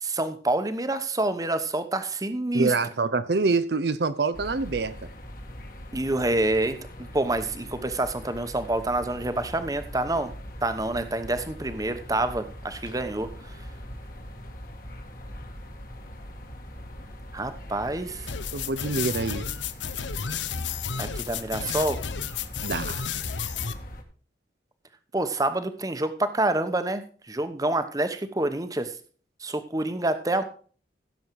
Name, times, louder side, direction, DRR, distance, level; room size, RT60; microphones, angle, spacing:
voice 1, 0.0-2.7 5.9-10.3 10.6-13.6 17.3-18.3 21.0-22.0 25.1-27.0 27.3-28.9 29.4-30.4, right 2 dB, 20° right, 1.0 m, -27 dB
voice 2, 2.5-4.9 18.5-19.5 22.6-23.0, right 3 dB, 60° right, 0.7 m, -26 dB
sound 1, 4.3-24.0, equal, 50° left, 2.0 m, -42 dB
sound 2, 18.3-23.7, left 7 dB, 85° left, 0.9 m, -32 dB
15.5 x 7.2 x 4.7 m
head